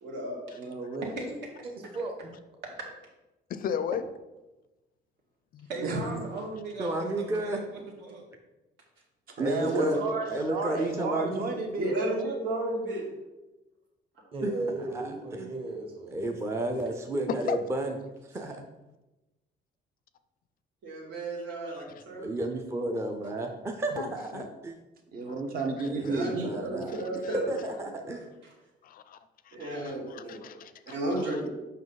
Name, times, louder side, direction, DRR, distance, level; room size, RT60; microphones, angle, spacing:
voice 1, 0.0-0.4 9.5-10.1 11.8-13.1 20.8-22.3 26.1-27.5 28.0-28.1 29.5-30.4 30.9-31.5, right 1 dB, 85° right, -3 dB, 2.8 m, -33 dB
voice 2, 0.6-1.1 5.8-6.2 9.4-12.4 25.1-26.9, right 3 dB, 55° right, 3 dB, 1.3 m, -32 dB
voice 3, 1.6-2.3 14.3-16.2, right 2 dB, 30° right, 1 dB, 1.0 m, -36 dB
voice 4, 3.5-4.0 5.5-5.7 17.3-17.6 24.0-24.1 24.3-24.5 28.8-29.2 29.5-31.0 31.3-31.4, left 8 dB, 50° left, 12 dB, 0.4 m, -34 dB
voice 5, 5.7-8.3, right 2 dB, 70° right, 0 dB, 1.9 m, -38 dB
voice 6, 6.8-7.6 9.4-10.0 10.3-11.5 14.4-14.5 14.8-15.5 16.1-18.0 18.3-18.6 22.2-24.8 25.9-27.0 27.5-28.3, right 1 dB, 15° right, 4 dB, 0.5 m, -32 dB
7.4 x 5.5 x 4.0 m, 1.1 s
cardioid pair, 165°, 18 cm